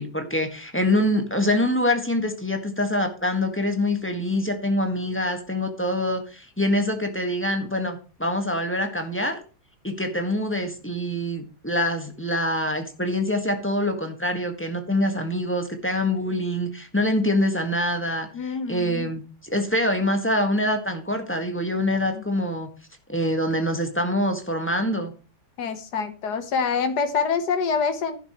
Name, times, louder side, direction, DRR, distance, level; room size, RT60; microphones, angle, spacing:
voice 1, 0.0-9.4 9.8-22.7 23.1-25.1, left 1 dB, 10° left, 5 dB, 1.7 m, -25 dB
voice 2, 18.3-19.1 22.1-22.2 25.6-28.2, left 5 dB, 85° left, 8 dB, 1.8 m, -26 dB
12.0 x 11.0 x 3.2 m, 0.36 s
omnidirectional pair, 1.7 m